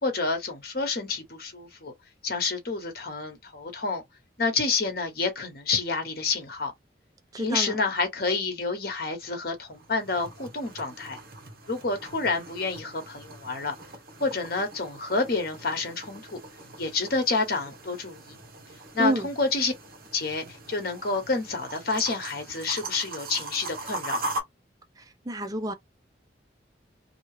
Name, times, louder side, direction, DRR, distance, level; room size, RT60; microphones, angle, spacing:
voice 1, 0.0-1.9 2.2-4.0 4.4-6.7 7.4-11.2 11.7-13.7 14.2-16.4 16.8-18.4 18.9-19.7 20.1-24.2, left 3 dB, 55° left, 1.1 m, -29 dB
voice 2, 7.3-7.8 19.0-19.3 25.0-25.7, right 1 dB, 20° right, 0.5 m, -29 dB
sound 1, 9.6-24.4, right 2 dB, 55° right, 1.0 m, -40 dB
2.8 x 2.3 x 3.1 m
head